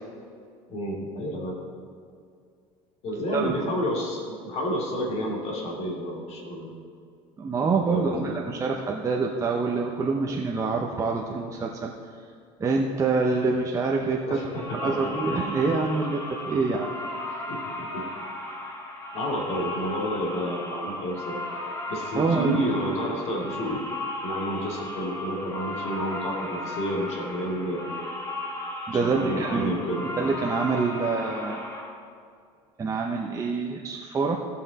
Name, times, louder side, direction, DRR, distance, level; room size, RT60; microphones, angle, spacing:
voice 1, 0.7-1.6 3.0-6.7 7.9-8.3 14.3-15.0 16.5-16.7 17.5-18.1 19.1-21.4 21.9-23.8 24.2-27.9 28.9-30.1, equal, 50° left, -2 dB, 2.6 m, -30 dB
voice 2, 7.4-11.9 12.6-14.5 14.8-16.9 17.3-17.4 22.2-22.6 28.9-29.7 30.2-31.6 32.8-34.4, right 4 dB, 25° right, -1 dB, 0.7 m, -26 dB
sound 1, 14.5-31.8, left 1 dB, 20° left, 2.2 m, -35 dB
16.0 x 5.7 x 4.1 m, 2.3 s
supercardioid pair, 115°, 14 cm